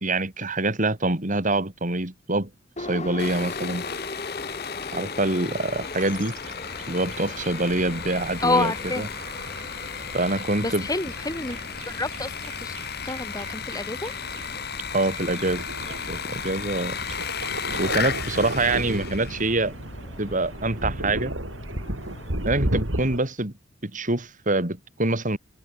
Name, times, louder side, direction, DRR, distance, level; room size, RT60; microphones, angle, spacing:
voice 1, 0.0-2.5 2.8-3.8 4.9-6.4 6.9-9.1 10.1-10.9 14.9-15.6 16.1-17.0 17.8-19.7 20.2-21.3 22.5-23.5 23.8-25.4, right 2 dB, 40° right, 3.6 m, -25 dB
Subway metro underground, 2.8-22.6, left 2 dB, 35° left, 3.0 m, -41 dB
Sawing, 3.2-19.6, left 8 dB, 55° left, 6.3 m, -35 dB
sound 1, 5.4-23.2, right 1 dB, 90° right, 5.5 m, -35 dB
voice 2, 8.4-9.1 10.6-12.7 13.0-14.1, left 2 dB, 20° left, 4.5 m, -28 dB
open air
head